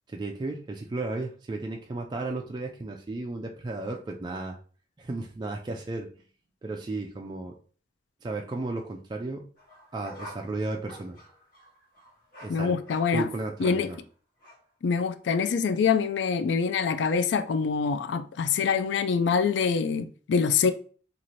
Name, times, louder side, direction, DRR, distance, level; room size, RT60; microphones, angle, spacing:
voice 1, 0.1-4.5 5.0-6.1 6.6-7.5 8.2-9.5 9.9-11.2 12.4-12.8 13.1-14.0, right 2 dB, 25° right, 0.3 m, -34 dB
sound 1, 9.6-14.0 14.4-14.6, equal, 50° left, 1.2 m, -48 dB
voice 2, 12.5-13.3 13.6-13.9 14.8-20.7, left 6 dB, 65° left, 0.3 m, -25 dB
2.7 x 2.4 x 3.0 m
head